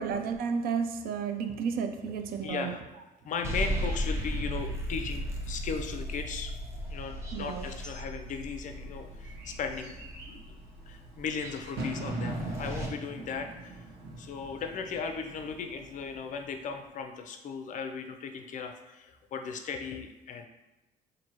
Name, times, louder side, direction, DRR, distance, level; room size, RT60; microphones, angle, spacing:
voice 1, 0.0-2.7 7.3-7.7, right 6 dB, 60° right, 7 dB, 0.4 m, -32 dB
voice 2, 2.4-2.8 3.2-6.5 6.9-10.5 10.9-13.8 14.2-20.5, left 5 dB, 50° left, 6 dB, 0.4 m, -37 dB
sound 1, 3.4-12.9, equal, 15° right, 0.8 m, -36 dB
Bird / Fireworks, 7.8-16.9, right 2 dB, 80° right, 1.1 m, -43 dB
4.2 x 2.6 x 2.9 m, 1.1 s
cardioid pair, 110°, 17 cm